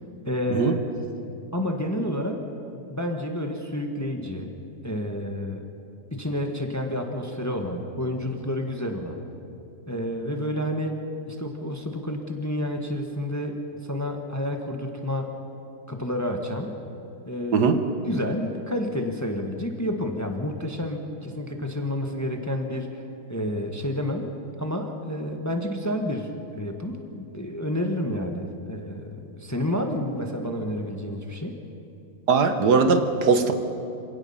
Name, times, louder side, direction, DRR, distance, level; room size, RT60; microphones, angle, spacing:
voice 1, 0.2-0.9 1.5-2.4 2.7-4.6 4.8-5.7 6.1-9.2 9.9-11.0 11.3-15.3 15.9-16.8 17.2-17.8 18.0-23.0 23.3-31.6, left 1 dB, 10° left, 4 dB, 1.3 m, -30 dB
voice 2, 32.3-33.5, right 5 dB, 70° right, 7 dB, 1.7 m, -20 dB
27.0 x 17.5 x 5.6 m, 2.8 s
omnidirectional pair, 1.9 m